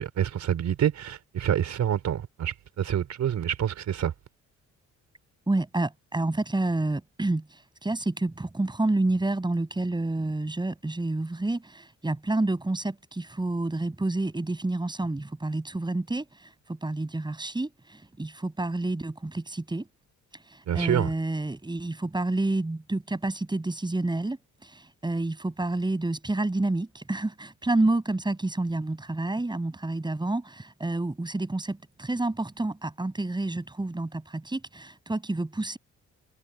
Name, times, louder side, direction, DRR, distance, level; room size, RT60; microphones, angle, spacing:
voice 1, 0.0-4.1 20.7-21.1, right 9 dB, 65° right, 4.2 m, -27 dB
voice 2, 5.5-19.9 20.5-35.8, right 2 dB, 15° right, 7.7 m, -29 dB
cardioid pair, 90°, 30 cm